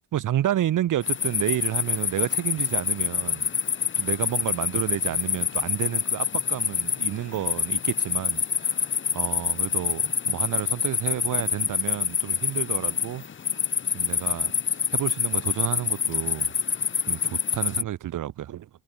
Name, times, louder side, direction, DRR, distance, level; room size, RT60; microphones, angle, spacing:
voice 1, 0.1-3.5 4.0-13.6 13.9-14.5 14.9-16.5 17.1-18.7, right 12 dB, 60° right, 6.4 m, -30 dB
sound 1, 1.0-17.8, left 7 dB, 35° left, 4.6 m, -26 dB
cardioid pair, 165°, 36 cm